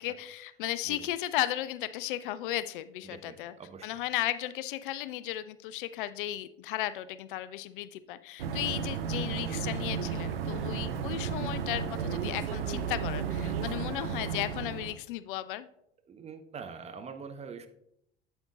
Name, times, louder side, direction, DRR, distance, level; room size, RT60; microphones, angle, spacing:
voice 1, 0.0-3.5 3.8-15.7, left 14 dB, 60° left, 15 dB, 0.4 m, -35 dB
voice 2, 3.0-4.0 8.5-8.8 10.5-10.7 13.5-13.9 16.1-17.7, right 5 dB, 20° right, 8 dB, 0.7 m, -45 dB
sound 1, 8.4-14.9, right 6 dB, 75° right, 0.7 m, -33 dB
8.6 x 8.0 x 2.4 m, 0.76 s
figure-of-eight pair, 75°, 30 cm